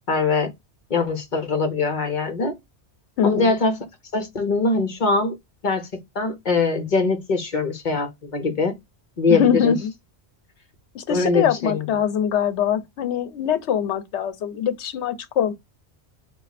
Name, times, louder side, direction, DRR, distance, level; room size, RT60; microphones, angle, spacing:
voice 1, 0.1-0.5 0.9-2.6 3.2-3.7 4.1-5.3 5.6-5.9 6.1-8.7 9.2-9.8 11.1-11.9, left 4 dB, 45° left, 1.0 m, -22 dB
voice 2, 3.2-3.5 9.3-9.9 10.9-15.5, left 8 dB, 85° left, 1.0 m, -23 dB
4.2 x 2.4 x 4.0 m
omnidirectional pair, 1.1 m